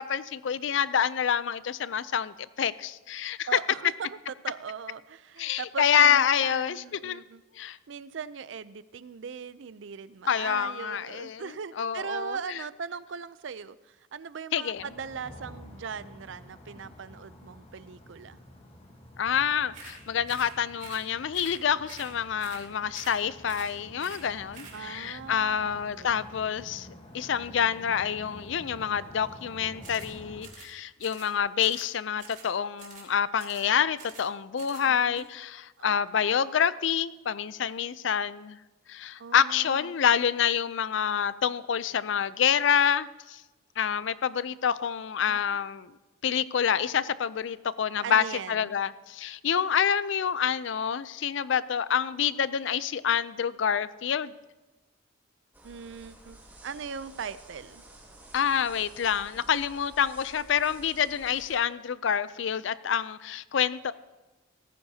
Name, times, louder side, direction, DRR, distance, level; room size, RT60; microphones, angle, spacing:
voice 1, 0.0-3.6 5.4-7.2 7.6-7.8 10.3-11.4 11.8-12.4 14.5-14.8 19.2-26.9 27.1-38.6 38.9-43.4 43.8-45.9 46.2-54.3 58.3-63.9, left 8 dB, 65° left, 17 dB, 0.4 m, -27 dB
voice 2, 3.5-4.2 4.4-7.4 7.9-18.4 24.7-26.2 34.9-35.3 35.8-36.0 39.2-39.9 45.3-45.6 48.0-48.7 55.6-57.8, right 6 dB, 65° right, 16 dB, 0.5 m, -40 dB
sound 1, 14.7-30.4, left 1 dB, 30° left, 1.3 m, -49 dB
sound 2, 19.7-20.0 20.3-20.5 20.8-21.1 21.3-21.6 21.9-22.1 22.4-22.7 22.9-23.2 23.5-23.7 24.0-24.3 24.5-24.8 29.8-30.1 30.4-30.7 31.0-31.3 31.6-31.9 32.2-32.5 32.8-33.1 33.4-33.7 34.0-34.3 34.6-34.9 35.2-35.3, right 5 dB, 40° right, 2.7 m, -47 dB
sound 3, 55.5-61.6, right 1 dB, 10° right, 4.1 m, -52 dB
17.0 x 14.0 x 2.8 m, 1.1 s
head